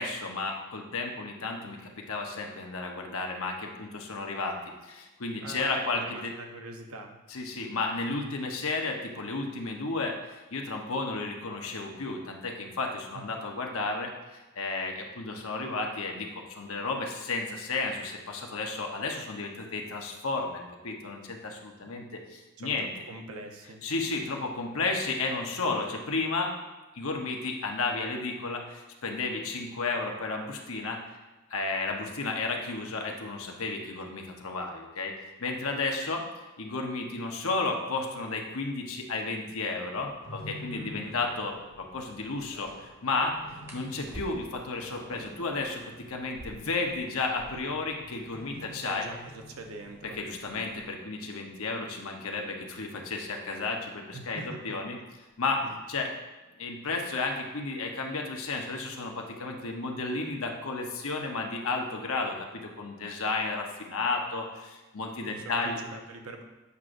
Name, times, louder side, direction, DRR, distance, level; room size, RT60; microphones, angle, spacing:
voice 1, 0.0-6.3 7.3-10.2 10.5-22.9 23.8-26.5 26.9-31.0 31.5-35.1 35.4-36.2 36.6-43.4 43.7-45.8 46.1-49.1 50.2-55.0 55.4-55.6 55.9-56.1 56.6-65.8, left 3 dB, 70° left, 2 dB, 0.9 m, -33 dB
voice 2, 5.4-7.2 13.1-13.2 22.6-23.8 40.7-41.2 48.9-50.2 54.1-54.8 55.6-55.7 65.3-66.4, right 2 dB, 75° right, 3 dB, 0.8 m, -43 dB
sound 1, 40.0-50.8, left 1 dB, 40° left, 1.3 m, -49 dB
sound 2, 41.0-41.2 43.6-44.7 46.2-47.8 48.1-48.2 48.4-49.0 49.7-52.2 53.2-53.5 53.9-54.4 54.7-55.5, right 1 dB, 10° right, 1.1 m, -49 dB
8.2 x 6.1 x 2.6 m, 1.1 s
head